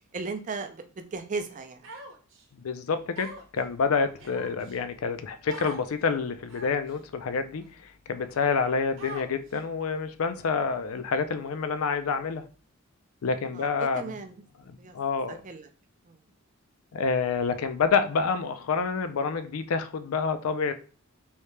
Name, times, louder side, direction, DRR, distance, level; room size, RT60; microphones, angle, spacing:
voice 1, 0.1-1.9 13.5-13.7 13.9-14.4 14.8-14.9 15.3-15.7 16.1-16.2, right 4 dB, 35° right, 0.4 m, -36 dB
Human voice, 1.8-2.4 3.2-3.6 4.2-4.8 5.5-5.8 6.5-6.9 7.6-7.7 9.0-9.6, right 2 dB, 60° right, 0.8 m, -42 dB
voice 2, 2.5-7.6 8.1-12.4 13.2-14.1 14.7-15.4 16.9-20.7, left 5 dB, 75° left, 0.4 m, -28 dB
3.2 x 2.8 x 3.2 m
head